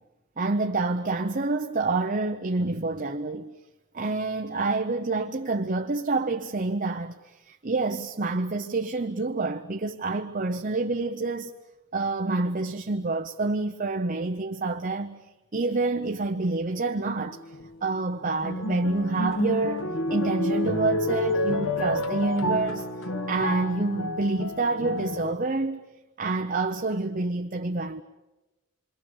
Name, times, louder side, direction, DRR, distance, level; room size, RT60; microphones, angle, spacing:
voice 1, 0.4-3.5 3.9-11.5 11.9-15.2 15.5-17.5 17.8-22.9 23.3-25.8 26.2-28.0, right 3 dB, 40° right, 0.8 m, -28 dB
sound 1, 17.2-17.7 18.2-25.3, left 1 dB, 70° left, 1.5 m, -29 dB
28.5 x 22.5 x 7.2 m
head